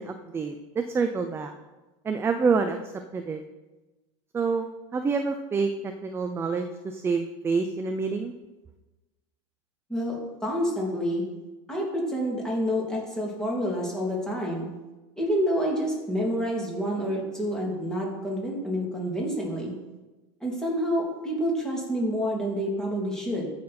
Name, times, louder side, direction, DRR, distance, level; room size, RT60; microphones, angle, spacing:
voice 1, 0.0-1.5 2.0-2.8 3.1-3.4 4.3-8.3, right 4 dB, 15° right, 7 dB, 0.5 m, -27 dB
voice 2, 10.4-11.2 11.7-14.7 15.2-19.7 20.4-23.5, equal, 5° left, -4 dB, 2.8 m, -28 dB
14.0 x 5.8 x 4.3 m, 1.1 s
supercardioid pair, 140°, 16 cm